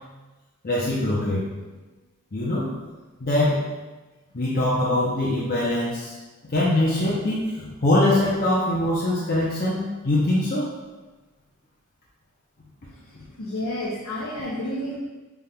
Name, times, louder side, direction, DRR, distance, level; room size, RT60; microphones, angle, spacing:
voice 1, 0.6-1.5 2.3-2.7 3.2-3.7 4.3-6.2 6.4-10.7 13.1-13.2, left 1 dB, 45° left, -6 dB, 0.7 m, -23 dB
voice 2, 12.8-15.0, left 1 dB, 75° left, -5 dB, 0.7 m, -31 dB
5.6 x 3.4 x 2.2 m, 1.2 s
head